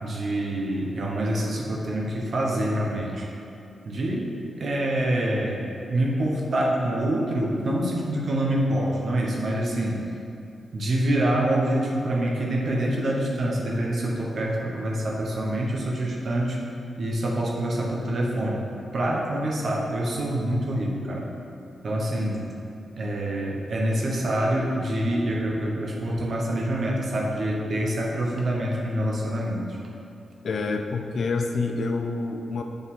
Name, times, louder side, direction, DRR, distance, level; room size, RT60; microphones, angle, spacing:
voice 1, 0.0-3.3 3.8-10.0 10.7-16.6 17.0-21.3 21.8-22.5 23.0-29.8, right 1 dB, 65° right, -2 dB, 1.1 m, -26 dB
voice 2, 30.4-32.6, left 3 dB, 70° left, 4 dB, 0.5 m, -27 dB
7.0 x 3.9 x 3.8 m, 2.6 s
cardioid pair, 65°, 0 cm